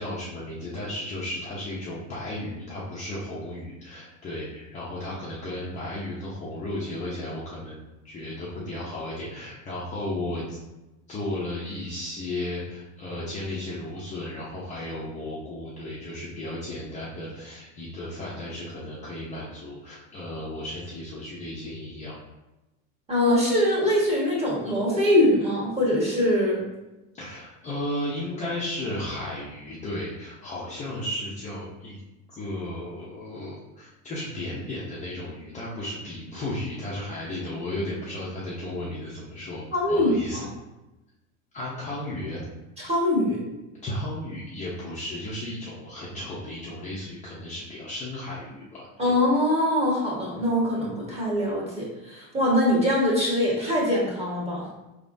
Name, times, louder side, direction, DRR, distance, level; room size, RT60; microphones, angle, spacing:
voice 1, 0.0-10.6 11.1-22.2 27.1-32.0 32.3-40.4 41.5-42.4 43.8-49.1, left 1 dB, 20° left, -7 dB, 0.6 m, -34 dB
voice 2, 23.1-26.6 39.7-40.5 42.8-43.4 49.0-54.7, left 1 dB, 15° right, -5 dB, 1.4 m, -23 dB
4.9 x 3.5 x 2.6 m, 1.0 s
cardioid pair, 155°, 39 cm